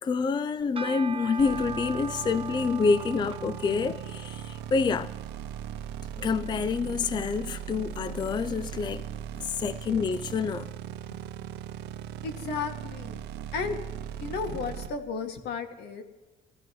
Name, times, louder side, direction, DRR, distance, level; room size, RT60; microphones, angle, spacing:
voice 1, 0.0-5.1 6.2-9.0 9.4-10.7, left 5 dB, 25° left, 0.4 m, -27 dB
sound 1, 0.6-9.9, right 5 dB, 35° right, 1.0 m, -43 dB
sound 2, 1.4-14.9, right 9 dB, 80° right, 0.7 m, -38 dB
voice 2, 12.2-13.2 13.5-13.8 14.2-16.0, left 5 dB, 75° left, 2.0 m, -33 dB
22.0 x 14.5 x 3.1 m
cardioid pair, 110°, 17 cm